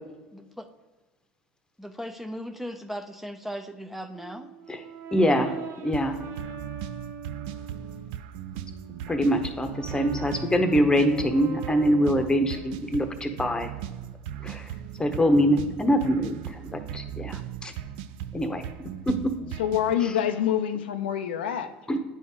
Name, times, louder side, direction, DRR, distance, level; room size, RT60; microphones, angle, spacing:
voice 1, 1.8-4.5, equal, 5° right, 0.5 m, -37 dB
Brass instrument, 4.1-8.1 8.7-12.7, right 5 dB, 50° right, 0.8 m, -42 dB
voice 2, 5.1-5.6 5.8-6.2 9.1-13.7 14.4-14.7 15.0-17.7 18.3-18.6 19.1-19.3 20.0-20.1 21.9-22.0, equal, 15° left, 0.9 m, -24 dB
sound 1, 5.9-19.9, right 10 dB, 70° right, 0.4 m, -38 dB
voice 3, 19.6-21.7, left 10 dB, 85° left, 0.5 m, -26 dB
9.8 x 4.1 x 3.6 m
hypercardioid pair, 85°, 5 cm